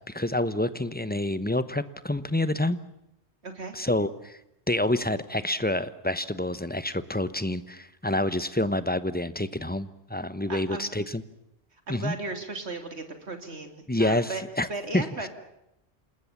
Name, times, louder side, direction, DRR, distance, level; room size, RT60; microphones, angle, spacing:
voice 1, 0.1-2.8 3.7-4.4 4.7-11.2 11.9-12.1 13.9-14.7 14.9-15.3, left 1 dB, 10° left, 14 dB, 1.0 m, -28 dB
voice 2, 3.4-3.8 10.5-10.9 11.9-14.4 14.7-15.3, right 3 dB, 75° right, 6 dB, 3.3 m, -36 dB
28.0 x 20.0 x 7.4 m, 0.83 s
omnidirectional pair, 1.1 m